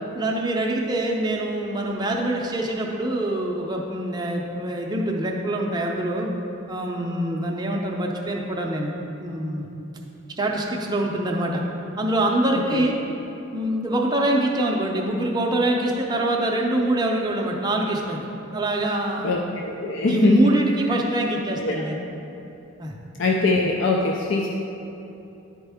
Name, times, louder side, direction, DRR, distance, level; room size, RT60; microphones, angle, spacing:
voice 1, 0.1-6.3 6.7-8.9 9.2-9.7 10.4-11.6 12.0-12.9 13.5-19.3 20.1-22.0 22.8-22.9, right 1 dB, 20° right, 0 dB, 0.6 m, -24 dB
voice 2, 19.2-20.5 21.6-21.8 23.2-24.5, left 2 dB, 55° left, 0 dB, 0.4 m, -22 dB
10.5 x 4.4 x 3.5 m, 2.9 s
head